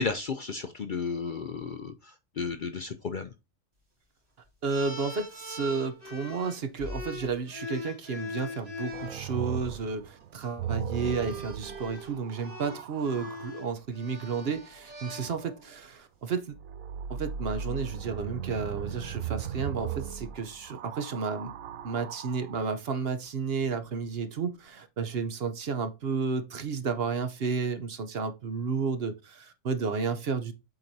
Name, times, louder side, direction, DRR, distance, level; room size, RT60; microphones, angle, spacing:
voice 1, 0.0-3.3, left 4 dB, 55° left, 0.6 m, -33 dB
voice 2, 4.6-16.6 17.1-21.5 21.8-30.5, right 5 dB, 55° right, 0.9 m, -32 dB
sound 1, 4.7-9.2 10.2-10.4 10.9-15.8, left 2 dB, 30° right, 2.4 m, -41 dB
sound 2, 8.9-13.5 16.5-22.6 23.6-24.2, right 8 dB, 90° right, 1.0 m, -37 dB
7.8 x 4.5 x 2.7 m
omnidirectional pair, 1.3 m